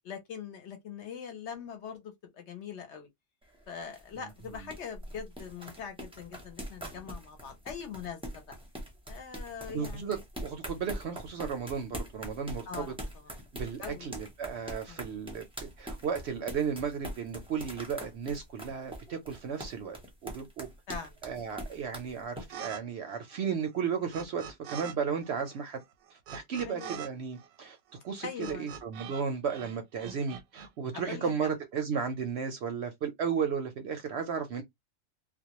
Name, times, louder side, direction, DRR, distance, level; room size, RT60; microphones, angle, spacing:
voice 1, 0.0-3.1 3.7-8.6 9.1-10.2 12.7-13.4 13.8-14.1 14.9-15.1 20.9-21.1 26.7-27.0 28.2-28.7 30.9-31.5, left 6 dB, 65° left, 0.8 m, -42 dB
sound 1, 3.4-22.5, equal, 5° right, 0.5 m, -42 dB
voice 2, 4.1-4.7 9.7-12.9 13.5-20.0 20.2-20.7 21.2-24.4 24.7-25.8 26.3-27.8 28.0-34.6, right 6 dB, 65° right, 0.7 m, -34 dB
sound 2, 22.5-22.8 23.1-24.9 25.2-29.2 29.5-30.7, right 8 dB, 85° right, 1.0 m, -44 dB
2.3 x 2.1 x 2.8 m
omnidirectional pair, 1.4 m